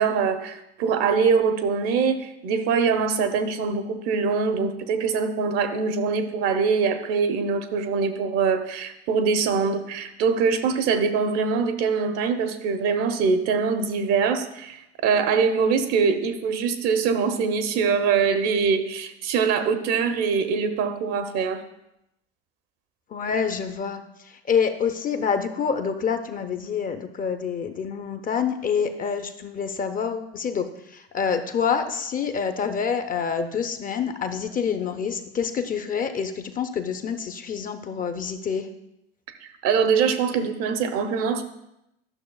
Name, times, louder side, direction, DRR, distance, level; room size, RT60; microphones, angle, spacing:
voice 1, 0.0-14.8 15.0-21.6 39.4-41.4, right 5 dB, 55° right, 8 dB, 0.8 m, -23 dB
voice 2, 23.1-24.0 24.5-30.7 30.9-38.7, left 6 dB, 25° left, 8 dB, 0.6 m, -27 dB
11.5 x 6.1 x 2.3 m, 0.85 s
hypercardioid pair, 75°, 31 cm